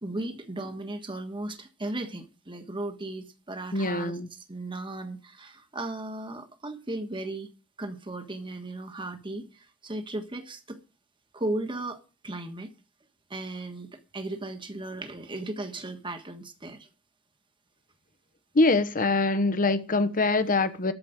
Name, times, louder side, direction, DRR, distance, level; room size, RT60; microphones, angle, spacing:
voice 1, 0.0-7.5 7.8-10.8 11.3-12.7 13.3-16.9, right 2 dB, 25° right, 1.4 m, -36 dB
voice 2, 3.7-4.3 18.5-20.9, left 3 dB, 40° left, 1.0 m, -24 dB
13.5 x 5.1 x 9.0 m
head